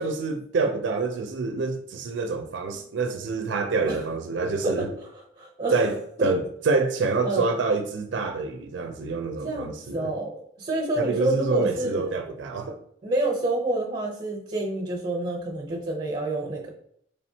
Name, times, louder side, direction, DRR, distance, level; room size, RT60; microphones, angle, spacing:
voice 1, 0.0-4.9 5.7-10.1 10.9-12.8, right 4 dB, 85° right, 0.4 m, -27 dB
voice 2, 5.4-5.9 7.2-7.5 9.4-12.1 13.0-16.7, right 2 dB, 30° right, 0.7 m, -28 dB
4.2 x 3.3 x 2.7 m
head